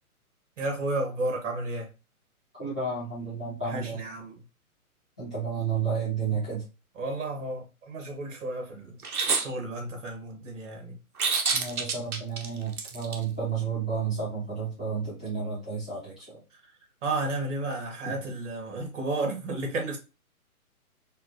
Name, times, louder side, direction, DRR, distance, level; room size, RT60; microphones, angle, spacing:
voice 1, 0.6-1.9 3.6-4.4 6.3-6.4 7.0-9.0 9.3-11.0 17.0-20.0, right 2 dB, 55° right, 1.8 m, -32 dB
voice 2, 2.6-4.0 5.2-6.6 11.5-16.4 18.0-18.2, right 5 dB, 5° left, 0.4 m, -31 dB
sound 1, 9.0-9.5 11.2-13.2, right 5 dB, 75° right, 1.0 m, -27 dB
4.3 x 2.6 x 2.6 m
hypercardioid pair, 135°, 44 cm